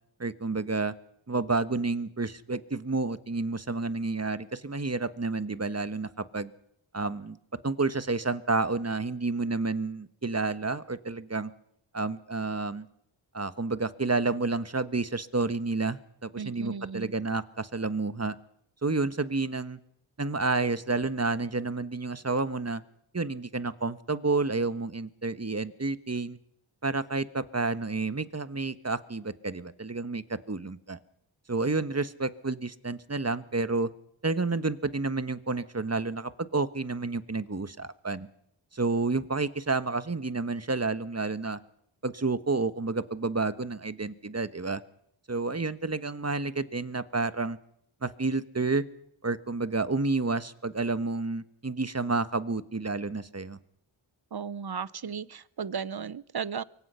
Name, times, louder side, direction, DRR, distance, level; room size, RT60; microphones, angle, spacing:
voice 1, 0.2-0.9 1.3-6.5 6.9-7.4 7.6-11.5 11.9-12.9 13.3-18.3 18.8-19.8 20.2-22.8 23.1-26.4 26.8-31.0 31.5-33.9 34.2-38.3 38.7-41.6 42.0-44.8 45.3-47.6 48.0-48.8 49.2-53.6, right 3 dB, 30° right, 13 dB, 1.3 m, -30 dB
voice 2, 16.4-17.1 54.3-56.6, right 6 dB, 50° right, 18 dB, 0.9 m, -35 dB
24.5 x 23.5 x 5.7 m, 0.72 s
cardioid pair, 40°, 49 cm